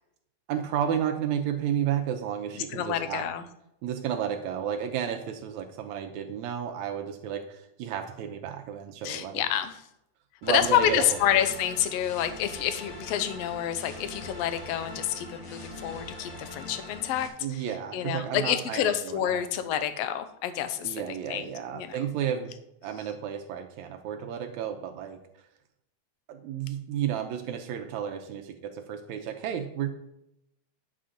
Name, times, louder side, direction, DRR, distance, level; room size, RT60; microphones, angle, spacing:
voice 1, 0.5-3.3 3.8-9.4 10.4-11.2 17.4-19.5 20.8-25.2 26.3-29.9, right 9 dB, 80° right, 5 dB, 1.9 m, -32 dB
voice 2, 2.5-3.4 9.0-9.7 10.5-17.6 17.9-21.0 21.3-22.0, left 10 dB, 75° left, 10 dB, 1.5 m, -28 dB
sound 1, 10.4-17.3, left 2 dB, 40° left, 1.5 m, -42 dB
9.8 x 6.5 x 3.8 m, 0.82 s
omnidirectional pair, 3.6 m